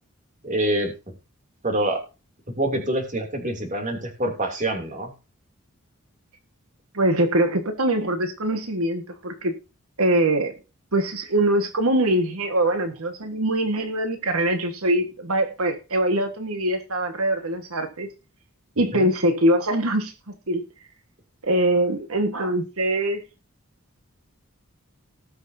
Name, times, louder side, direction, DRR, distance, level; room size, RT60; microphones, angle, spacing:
voice 1, 0.4-0.9 1.6-2.0 2.6-5.1 18.9-19.1, right 1 dB, 35° right, 2.8 m, -25 dB
voice 2, 6.9-9.5 10.0-10.5 10.9-18.1 18.8-20.6 21.4-23.2, right 1 dB, 80° right, 1.5 m, -23 dB
19.0 x 6.4 x 2.7 m
head